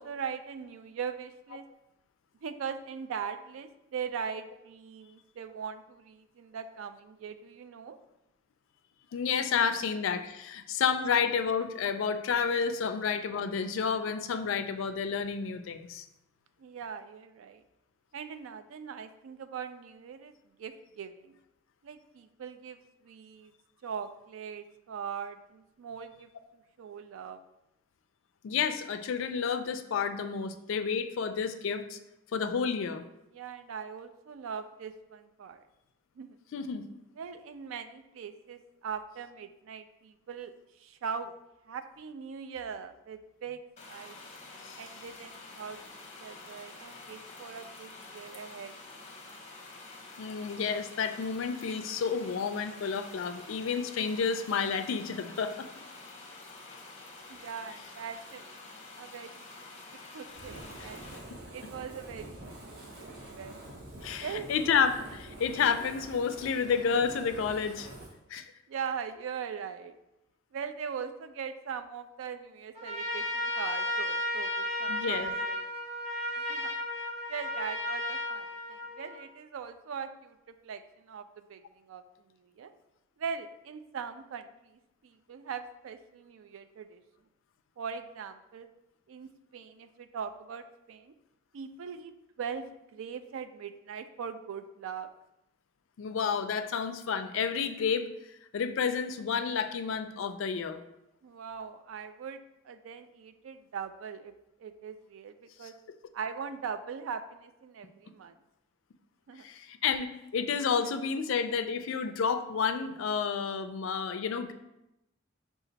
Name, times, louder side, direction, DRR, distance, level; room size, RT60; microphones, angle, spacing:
voice 1, 0.0-1.7 2.4-8.0 9.8-9.9 16.6-17.6 18.1-21.3 21.8-22.8 23.0-23.5 23.8-27.4 33.3-35.6 36.2-36.4 37.2-41.3 41.7-44.2 44.8-48.7 57.3-58.4 59.0-59.6 60.1-61.0 61.5-63.6 64.2-64.5 68.7-70.0 70.5-75.6 76.4-76.7 77.3-81.6 81.9-82.0 82.4-82.7 83.2-87.0 87.8-88.7 89.1-91.1 91.5-92.1 92.4-95.1 101.2-104.3 104.6-105.8 106.1-108.4 109.3-109.5, right 6 dB, 70° right, 10 dB, 0.3 m, -41 dB
voice 2, 9.1-16.0 28.4-32.0 32.3-33.0 36.5-36.8 44.6-44.8 50.2-55.7 60.8-60.9 61.3-61.4 64.0-67.9 68.3-68.5 74.9-75.3 96.0-98.1 98.5-100.8 105.6-105.7 109.4-114.5, left 6 dB, 65° left, 9 dB, 0.3 m, -30 dB
sound 1, 43.8-61.2, left 3 dB, 35° left, 0.7 m, -48 dB
Fire, 60.3-68.1, right 1 dB, 50° right, 1.1 m, -46 dB
Trumpet, 72.7-79.3, left 1 dB, 30° right, 0.6 m, -34 dB
5.1 x 2.4 x 3.9 m, 0.90 s
head